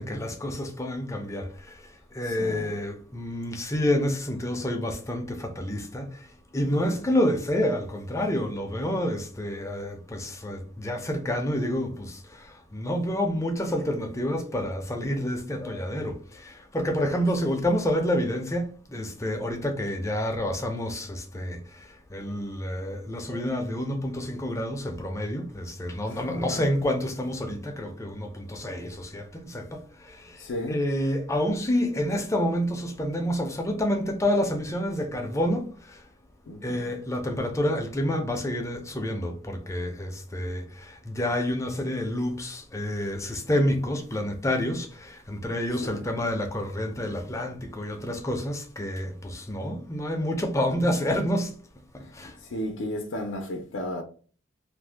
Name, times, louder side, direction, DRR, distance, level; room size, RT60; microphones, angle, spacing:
voice 1, 0.0-36.1 36.6-51.6 51.9-52.4, left 1 dB, 15° left, 0.5 m, -29 dB
voice 2, 2.2-2.8 6.7-7.1 17.4-17.6 26.1-26.7 30.4-30.8 36.5-36.9 45.8-46.1 52.0-52.1 52.4-54.0, left 1 dB, 75° left, 0.5 m, -35 dB
2.5 x 2.1 x 3.3 m
head